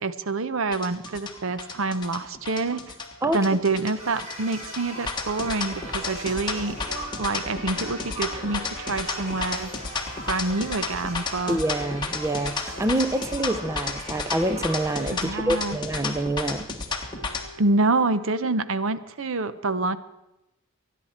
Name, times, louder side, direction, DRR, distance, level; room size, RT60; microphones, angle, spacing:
voice 1, 0.0-2.8 3.3-6.8 7.2-9.7 10.2-11.6 15.1-15.8 17.6-20.0, right 3 dB, 65° right, 13 dB, 0.8 m, -26 dB
sound 1, 0.7-17.4, left 4 dB, 20° left, 1.5 m, -32 dB
sound 2, 1.1-18.8, right 4 dB, 90° right, 1.5 m, -49 dB
sound 3, 4.0-15.2, right 1 dB, 30° right, 4.1 m, -39 dB
voice 2, 11.5-16.7, right 1 dB, 15° right, 11 dB, 0.6 m, -26 dB
25.5 x 10.5 x 4.3 m, 0.94 s
head